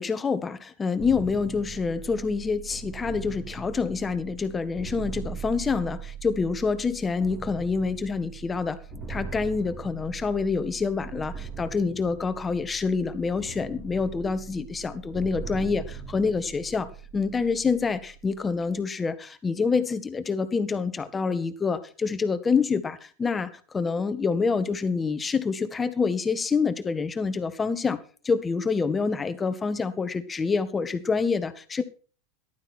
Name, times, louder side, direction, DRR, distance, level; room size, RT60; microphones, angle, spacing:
voice 1, 0.0-8.8 9.1-16.9 17.1-31.8, left 5 dB, 20° left, 1.7 m, -27 dB
sound 1, 1.0-18.7, right 6 dB, 30° right, 3.7 m, -40 dB
14.5 x 12.0 x 4.5 m
hypercardioid pair, 95°, 0 cm